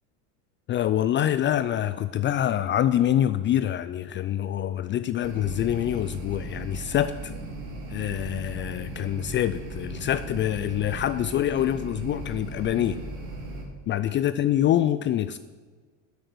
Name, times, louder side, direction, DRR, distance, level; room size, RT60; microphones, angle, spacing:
voice 1, 0.7-7.3 7.9-13.0 13.9-15.4, left 11 dB, 35° left, 13 dB, 0.4 m, -25 dB
sound 1, 5.2-13.6, right 2 dB, 70° right, 3.2 m, -37 dB
9.6 x 8.6 x 6.2 m, 1.4 s
supercardioid pair, 100°, 37 cm